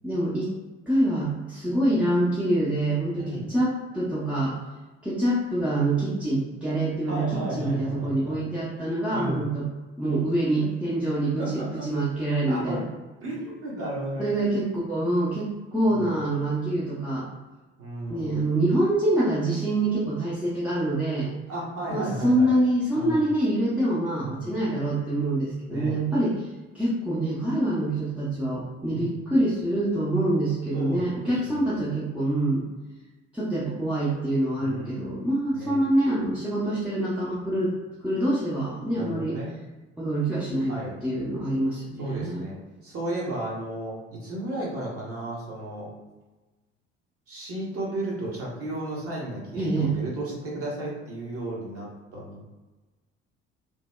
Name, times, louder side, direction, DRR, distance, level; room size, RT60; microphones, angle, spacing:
voice 1, 0.0-0.5 0.9-4.6 5.0-9.7 10.0-12.8 14.2-17.3 18.1-21.3 21.9-26.5 26.7-32.7 33.3-37.7 38.0-39.4 40.0-40.7 41.0-42.4 49.6-49.9, right 1 dB, 5° right, -9 dB, 0.5 m, -25 dB
voice 2, 3.2-3.5 7.1-8.4 9.1-9.5 11.4-11.9 12.5-12.8 13.2-14.4 15.8-16.1 17.8-18.5 21.5-22.6 22.9-23.3 24.2-24.6 25.7-26.0 28.9-29.2 30.7-31.9 34.6-35.2 35.5-35.8 38.9-39.5 40.7-41.0 42.0-45.9 47.3-52.5, right 1 dB, 40° right, -4 dB, 1.0 m, -34 dB
2.9 x 2.0 x 2.2 m, 1.2 s
figure-of-eight pair, 50°, 35 cm